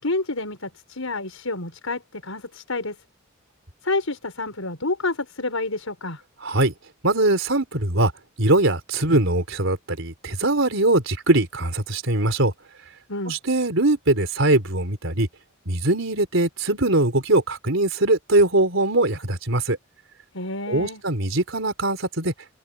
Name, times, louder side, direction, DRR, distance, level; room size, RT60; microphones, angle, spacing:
voice 1, 0.0-3.0 3.8-6.2 13.1-13.4 20.3-21.0, left 2 dB, 90° left, 5.9 m, -29 dB
voice 2, 6.4-6.7 7.0-8.1 8.4-12.5 13.3-15.3 15.7-19.8 20.7-22.3, right 2 dB, 70° right, 4.5 m, -21 dB
head